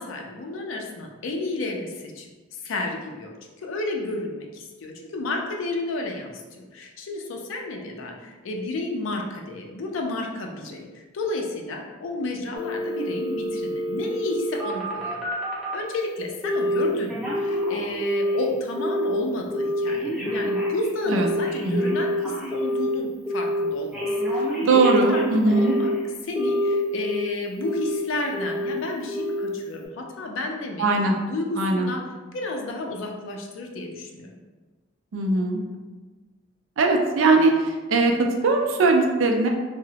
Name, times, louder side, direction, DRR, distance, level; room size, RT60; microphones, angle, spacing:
voice 1, 0.0-3.3 3.6-15.2 15.7-25.9 26.2-30.9 31.3-32.0 32.3-34.4, left 2 dB, 70° left, 1 dB, 0.4 m, -31 dB
Telephone, 12.5-15.8 16.4-16.8 17.1-18.4 18.8-19.1 19.5-22.9 23.3-23.6 23.9-26.0 26.4-27.2 27.6-28.0 28.3-28.7 29.1-29.5 29.8-29.9, equal, 5° right, 0.5 m, -27 dB
voice 2, 24.7-25.7 30.8-31.1 31.6-31.9 35.1-35.6 36.8-38.1 38.4-39.5, right 3 dB, 70° right, 2 dB, 0.4 m, -20 dB
2.8 x 2.0 x 2.7 m, 1.3 s
head